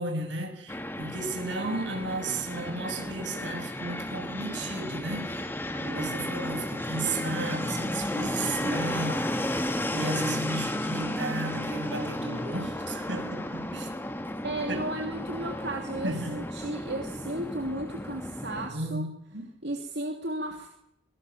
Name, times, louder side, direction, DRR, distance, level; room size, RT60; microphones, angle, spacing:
voice 1, 0.0-5.5 5.8-13.9 14.7-14.9 16.0-16.4 18.7-19.4, right 2 dB, 90° right, 7.2 m, -34 dB
Fixed-wing aircraft airplane, 0.7-18.7, left 1 dB, 10° left, 1.9 m, -33 dB
voice 2, 14.4-19.1 19.6-20.7, right 1 dB, 70° right, 2.9 m, -34 dB
25.0 x 23.0 x 7.5 m
head